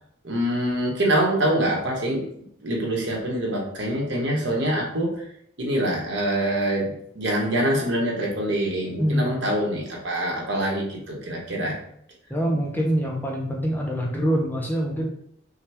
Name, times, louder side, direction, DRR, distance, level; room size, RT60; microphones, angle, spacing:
voice 1, 0.2-2.2 2.6-5.1 5.6-11.8, right 1 dB, 65° right, -2 dB, 1.2 m, -25 dB
voice 2, 9.0-9.4 12.3-15.1, equal, 10° left, -1 dB, 0.5 m, -24 dB
5.7 x 2.3 x 3.5 m, 0.70 s
head